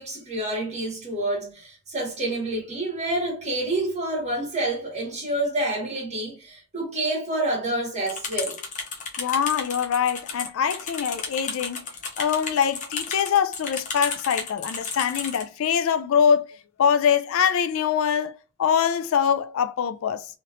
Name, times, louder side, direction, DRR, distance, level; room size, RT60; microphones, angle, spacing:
voice 1, 0.0-8.6, right 1 dB, 30° right, 1.5 m, -28 dB
sound 1, 8.1-15.4, left 5 dB, 35° left, 0.6 m, -33 dB
voice 2, 9.2-11.9 12.2-18.3 18.6-20.3, left 7 dB, 65° left, 0.3 m, -23 dB
3.1 x 3.0 x 2.5 m
head